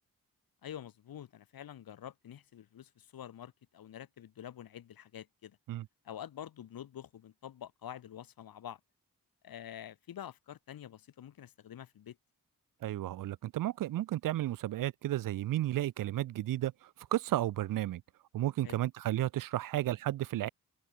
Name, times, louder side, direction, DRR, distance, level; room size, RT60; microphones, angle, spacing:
voice 1, 0.6-5.6 6.0-8.8 9.4-12.2 18.6-18.8, left 10 dB, 90° left, 2.5 m, -47 dB
voice 2, 12.8-16.7 17.1-18.0 18.3-20.5, right 14 dB, 70° right, 0.5 m, -33 dB
cardioid pair, 65°, 34 cm